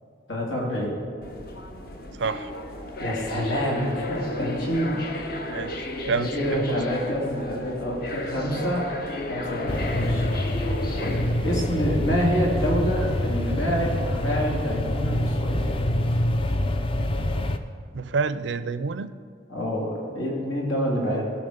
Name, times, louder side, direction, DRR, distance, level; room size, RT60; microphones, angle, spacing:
voice 1, 0.3-0.9 3.0-5.6 6.1-8.8 9.3-10.3 11.0-15.7 19.5-21.3, equal, 85° left, -2 dB, 2.7 m, -27 dB
sound 1, 1.2-16.2, left 1 dB, 50° left, 0.9 m, -35 dB
voice 2, 2.2-2.5 5.5-6.8 11.6-11.9 17.9-19.1, right 4 dB, 70° right, 14 dB, 0.4 m, -29 dB
sound 2, 9.7-17.6, left 1 dB, 25° left, 0.4 m, -26 dB
17.5 x 6.0 x 5.1 m, 2.2 s
head